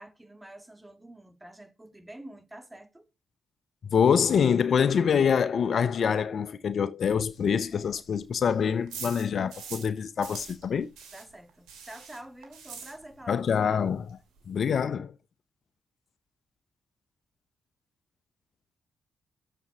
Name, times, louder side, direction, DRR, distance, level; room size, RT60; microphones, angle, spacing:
voice 1, 0.0-3.1 11.1-13.9, right 1 dB, 15° right, 2.2 m, -47 dB
voice 2, 3.9-10.9 13.3-14.2 14.5-15.1, left 7 dB, 65° left, 0.7 m, -25 dB
sound 1, 7.1-9.9 10.2-13.4 13.7-13.8 14.1-14.2 14.4-14.8, right 6 dB, 85° right, 2.2 m, -44 dB
7.1 x 6.9 x 4.8 m
supercardioid pair, 45°, 0 cm